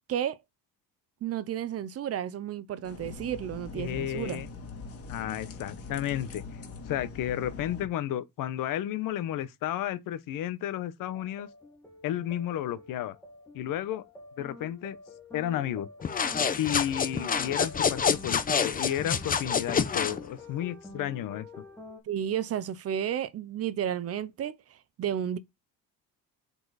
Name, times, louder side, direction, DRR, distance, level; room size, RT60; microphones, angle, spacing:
voice 1, 1.2-4.4 22.1-24.6 25.0-25.4, right 9 dB, 40° right, 0.8 m, -32 dB
sound 1, 2.8-7.8, left 4 dB, 40° left, 2.0 m, -42 dB
voice 2, 3.7-4.5 5.1-6.4 6.9-11.5 12.0-13.2 13.5-14.0 14.4-15.0 15.3-15.9 16.6-21.5, left 11 dB, 65° left, 0.9 m, -32 dB
sound 2, 11.0-22.0, left 2 dB, 5° left, 2.0 m, -48 dB
sound 3, 16.0-20.2, left 6 dB, 25° left, 0.7 m, -27 dB
8.0 x 4.5 x 4.1 m
cardioid pair, 155°, 36 cm